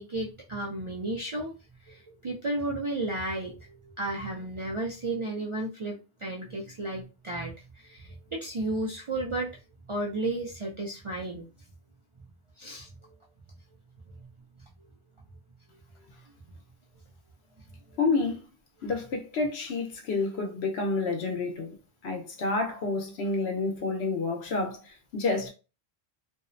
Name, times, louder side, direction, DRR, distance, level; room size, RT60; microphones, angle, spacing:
voice 1, 0.0-1.5 1.9-9.5 9.9-11.5 12.6-13.2 17.9-18.0, right 2 dB, 55° right, 0.3 m, -33 dB
voice 2, 18.0-18.5 18.8-21.8 22.0-25.5, left 3 dB, 85° left, 0.9 m, -29 dB
2.6 x 2.0 x 2.5 m
omnidirectional pair, 1.1 m